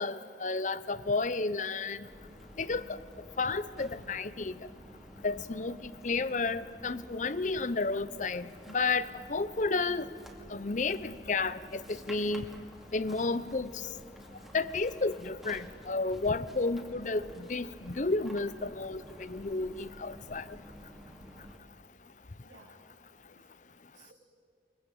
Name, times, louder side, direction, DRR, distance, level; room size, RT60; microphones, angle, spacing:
voice 1, 0.0-2.0 2.6-2.8 3.4-4.5 5.2-5.8 6.0-10.0 10.5-12.5 12.9-13.7 14.5-20.4, left 3 dB, 40° left, 16 dB, 0.7 m, -32 dB
sound 1, 2.0-21.6, equal, ahead, 2.4 m, -51 dB
voice 2, 22.0-22.7 23.3-23.5 23.9-24.1, right 3 dB, 85° right, -3 dB, 3.2 m, -60 dB
23.0 x 22.0 x 9.1 m, 2.2 s
head